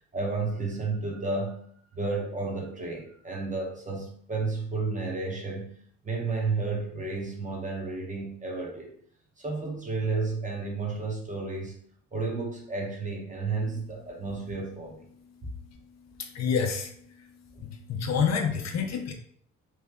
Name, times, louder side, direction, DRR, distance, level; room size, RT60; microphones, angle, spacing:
voice 1, 0.1-1.6 1.9-5.7 6.0-8.9 9.4-11.8 12.1-15.0, right 3 dB, 25° right, -1 dB, 1.0 m, -32 dB
voice 2, 16.2-16.9 17.6-19.1, left 6 dB, 60° left, 4 dB, 0.6 m, -28 dB
3.1 x 2.2 x 3.5 m, 0.63 s
cardioid pair, 90°, 30 cm